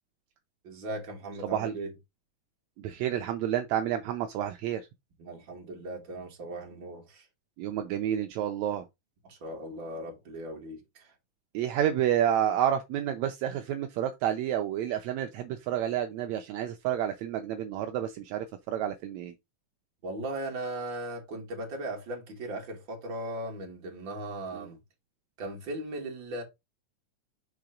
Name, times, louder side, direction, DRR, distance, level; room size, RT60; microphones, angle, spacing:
voice 1, 0.6-1.9 5.2-7.3 9.2-11.1 20.0-24.8 25.4-26.4, right 1 dB, 40° right, 2.3 m, -38 dB
voice 2, 1.4-1.7 2.8-4.8 7.6-8.8 11.5-19.3 24.5-24.7, right 10 dB, 80° right, 1.6 m, -29 dB
5.9 x 3.7 x 5.1 m
omnidirectional pair, 3.9 m